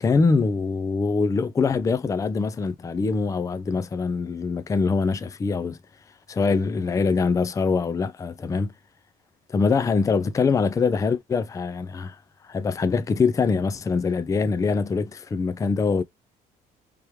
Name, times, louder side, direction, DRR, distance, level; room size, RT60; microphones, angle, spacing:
voice 1, 0.0-5.8 6.3-8.7 9.5-12.2 12.4-16.0, left 4 dB, 20° left, 0.4 m, -23 dB
3.4 x 3.0 x 3.1 m
cardioid pair, 110°, 17 cm